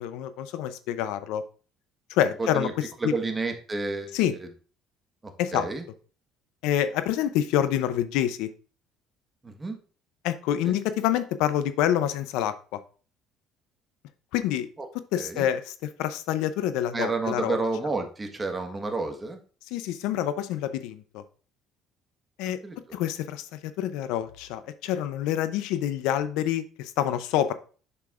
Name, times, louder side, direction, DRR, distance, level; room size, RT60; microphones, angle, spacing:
voice 1, 0.0-1.4 2.1-2.7 3.0-3.1 4.1-4.3 5.4-5.7 6.6-8.5 10.2-12.8 14.3-14.7 15.1-17.6 19.7-21.2 22.4-22.6 22.9-23.5 23.8-27.5, left 11 dB, 80° left, 12 dB, 0.6 m, -27 dB
voice 2, 2.4-2.7 3.0-4.5 5.2-5.8 9.4-9.8 10.6-10.7 14.8-14.9 15.1-15.5 16.9-19.4 22.4-23.0, right 3 dB, 20° right, 4 dB, 1.4 m, -31 dB
6.9 x 6.7 x 2.5 m, 0.39 s
cardioid pair, 105°, 0 cm